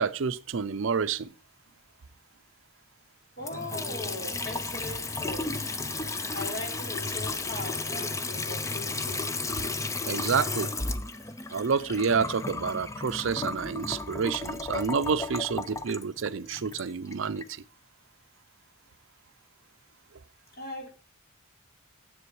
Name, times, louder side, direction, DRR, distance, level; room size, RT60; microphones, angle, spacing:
voice 1, 0.0-1.3 10.0-10.7 11.5-17.6, right 6 dB, 65° right, 0.5 m, -29 dB
voice 2, 3.4-5.7 6.3-9.3 20.5-20.9, left 1 dB, 45° left, 2.9 m, -39 dB
Water tap faucet / Sink (filling or washing) / Trickle dribble, 3.4-17.5, left 3 dB, 15° left, 0.4 m, -33 dB
9.8 x 7.8 x 4.6 m
head